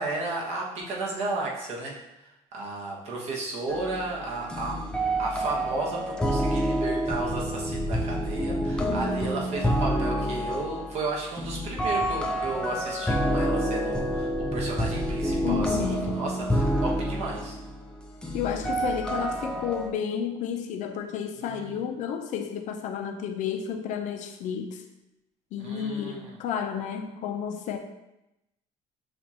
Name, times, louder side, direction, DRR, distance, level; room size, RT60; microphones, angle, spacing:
voice 1, 0.0-4.8 5.2-17.6 21.4-21.8 25.6-26.4, right 3 dB, 45° right, -3 dB, 1.1 m, -33 dB
Eroika remix, 3.7-19.9, equal, 5° left, 0.4 m, -28 dB
voice 2, 15.4-16.0 18.3-24.8 25.5-27.8, left 8 dB, 55° left, 5 dB, 0.5 m, -31 dB
6.6 x 2.5 x 2.8 m, 0.91 s
cardioid pair, 145°, 15 cm